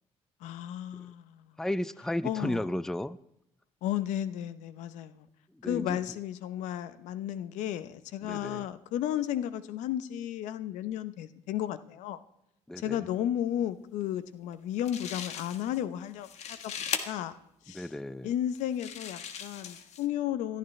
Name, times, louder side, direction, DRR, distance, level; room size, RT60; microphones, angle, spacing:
voice 1, 0.4-1.5 2.2-2.7 3.8-5.3 5.6-12.2 12.8-16.7 17.1-17.4 17.7-17.9 18.2-20.6, left 11 dB, 85° left, 0.8 m, -33 dB
voice 2, 1.6-3.2 5.6-6.0 8.2-8.7 12.7-13.1 17.7-18.3, left 1 dB, 5° left, 0.5 m, -33 dB
sound 1, 14.5-14.6 14.8-15.8 16.1-17.0 17.8-17.9 18.5-20.1, left 8 dB, 65° left, 1.5 m, -38 dB
18.0 x 13.0 x 3.3 m
cardioid pair, 90°, 12 cm